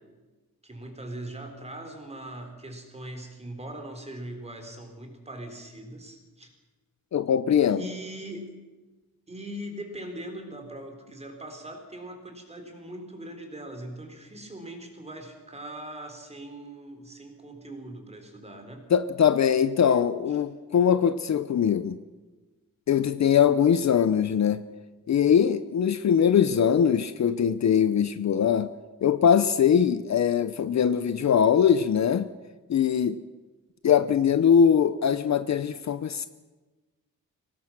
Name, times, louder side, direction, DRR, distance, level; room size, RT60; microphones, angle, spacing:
voice 1, 0.6-6.5 7.7-8.6 9.3-18.9, right 1 dB, 20° right, 4 dB, 3.7 m, -40 dB
voice 2, 7.1-7.9 18.9-22.0 22.9-24.6 25.1-28.7 29.0-32.3 32.7-33.2 33.8-36.3, left 8 dB, 50° left, 13 dB, 0.7 m, -22 dB
23.5 x 18.5 x 6.0 m, 1.2 s
wide cardioid pair, 145°, 35 cm